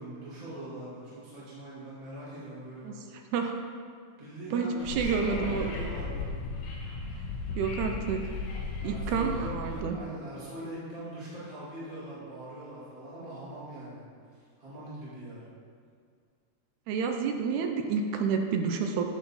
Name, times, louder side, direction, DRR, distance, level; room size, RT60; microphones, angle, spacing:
voice 1, 0.0-3.0 4.2-6.4 8.8-14.0 14.3-15.4, right 1 dB, 20° right, -10 dB, 1.1 m, -42 dB
voice 2, 3.3-3.6 4.5-5.7 7.6-8.2 8.8-10.0 16.9-19.1, right 5 dB, 80° right, 4 dB, 1.9 m, -29 dB
Wind / Subway metro underground, 4.8-9.8, left 3 dB, 70° left, 1.7 m, -36 dB
8.4 x 4.0 x 4.1 m, 2.1 s
omnidirectional pair, 3.5 m